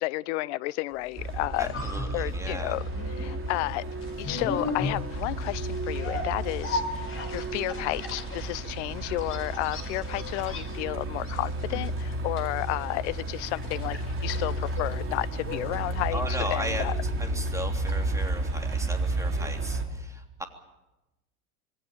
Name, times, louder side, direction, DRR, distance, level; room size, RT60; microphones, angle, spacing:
voice 1, 0.0-1.7 2.1-2.8 3.2-3.8 4.2-16.9, left 19 dB, 50° left, 0.8 m, -32 dB
sound 1, 1.2-19.2 19.5-19.6, left 3 dB, 25° left, 5.1 m, -38 dB
Truck, 1.2-19.8, right 1 dB, 25° right, 3.8 m, -32 dB
voice 2, 1.6-2.8 16.1-20.4, right 1 dB, 5° right, 3.3 m, -36 dB
26.5 x 20.5 x 7.4 m
figure-of-eight pair, 85°, 45 cm